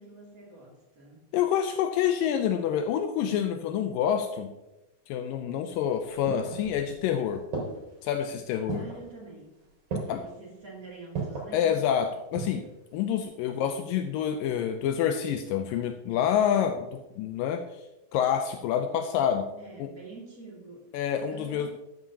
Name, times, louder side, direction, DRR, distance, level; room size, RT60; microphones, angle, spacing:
voice 1, 0.0-1.3 8.7-9.5 10.0-11.8 13.5-13.8 19.5-20.9 21.3-21.7, right 3 dB, 25° right, -3 dB, 2.5 m, -47 dB
voice 2, 1.3-4.5 5.1-7.4 8.0-8.9 10.1-10.2 11.5-12.6 12.9-17.6 18.1-19.5 19.8-19.9 20.9-21.7, left 9 dB, 80° left, 7 dB, 2.3 m, -27 dB
sound 1, 5.7-7.1 7.5-8.1 8.7-9.1 9.9-10.3 11.2-11.6 12.1-12.7 13.0-13.1, right 4 dB, 80° right, 5.4 m, -35 dB
13.0 x 11.5 x 2.9 m, 0.99 s
omnidirectional pair, 4.1 m